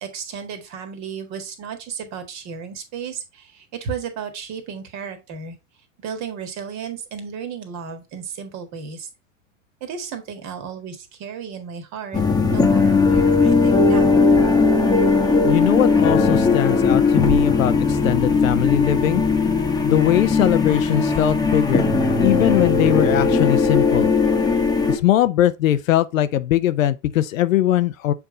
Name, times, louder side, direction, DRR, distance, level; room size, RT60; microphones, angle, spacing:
voice 1, 0.0-5.6 6.0-9.1 9.8-12.2 12.5-14.2, right 6 dB, 40° right, 1.7 m, -34 dB
sound 1, 12.1-25.0, left 4 dB, 10° left, 1.1 m, -18 dB
voice 2, 15.4-19.2 19.8-21.8 22.2-24.1 24.9-28.1, left 12 dB, 75° left, 0.7 m, -20 dB
7.0 x 3.6 x 3.8 m
hypercardioid pair, 105°, 39 cm